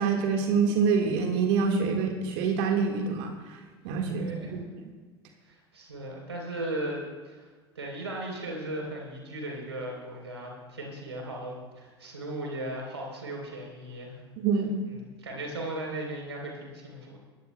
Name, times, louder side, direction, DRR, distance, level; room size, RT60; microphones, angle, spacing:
voice 1, 0.0-3.3 3.8-4.6 14.4-14.7, right 5 dB, 60° right, 3 dB, 1.6 m, -26 dB
voice 2, 4.2-4.6 5.4-7.5 7.8-14.2 14.8-17.2, right 1 dB, 90° right, 0 dB, 3.6 m, -37 dB
22.0 x 16.0 x 2.2 m, 1.4 s
hypercardioid pair, 75°, 14 cm